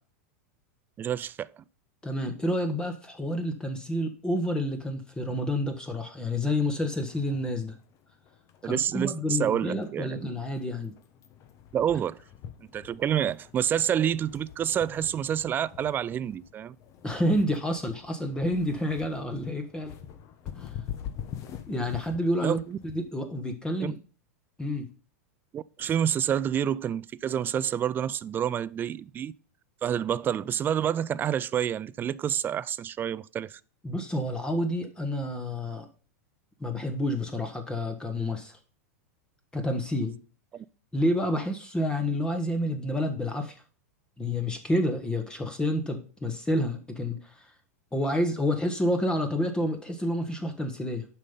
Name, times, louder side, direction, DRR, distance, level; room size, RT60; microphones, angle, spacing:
voice 1, 1.0-1.5 8.6-10.3 11.7-12.2 12.7-16.8 22.4-22.8 23.8-23.9 25.5-29.3 29.8-33.6 40.5-40.7, right 9 dB, 25° right, 0.4 m, -28 dB
voice 2, 2.0-7.7 8.6-10.9 17.0-19.9 20.6-20.7 21.7-24.0 24.6-24.9 33.8-35.9 36.6-38.6 39.5-40.2 40.9-43.6 44.2-47.5 47.9-51.1, left 1 dB, 10° left, 1.2 m, -29 dB
sound 1, 6.7-23.1, left 9 dB, 40° left, 1.0 m, -45 dB
7.4 x 5.4 x 5.5 m
hypercardioid pair, 110°, 8 cm